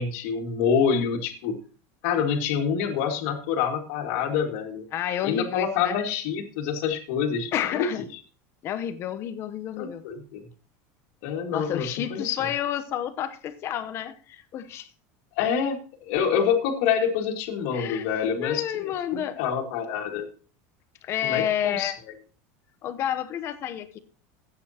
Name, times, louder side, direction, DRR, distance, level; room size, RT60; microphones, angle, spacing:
voice 1, 0.0-1.6 2.0-4.8 5.2-7.9 9.8-10.4 11.2-12.5 15.4-20.3 21.2-21.9, left 7 dB, 60° left, 2.1 m, -27 dB
voice 2, 4.9-5.9 7.5-8.1 8.6-10.0 11.5-14.9 17.7-18.1 18.4-19.4 21.0-22.0 22.8-24.0, left 10 dB, 35° left, 0.9 m, -30 dB
14.5 x 8.8 x 2.9 m
cardioid pair, 170°, 8 cm